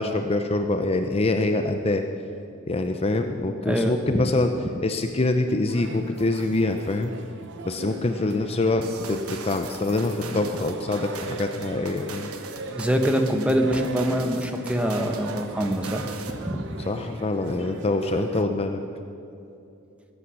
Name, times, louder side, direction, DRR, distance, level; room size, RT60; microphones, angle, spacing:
voice 1, 0.0-2.0 2.7-4.5 4.8-7.1 7.7-12.3 16.8-18.8, left 2 dB, 30° left, 6 dB, 0.5 m, -25 dB
voice 2, 3.6-4.0 12.7-16.0 16.4-16.6, equal, 5° right, 5 dB, 0.9 m, -24 dB
sound 1, 5.7-18.4, right 3 dB, 55° right, 0.8 m, -39 dB
sound 2, 8.8-16.5, right 4 dB, 85° right, 1.2 m, -40 dB
18.0 x 8.7 x 6.3 m, 2.7 s
head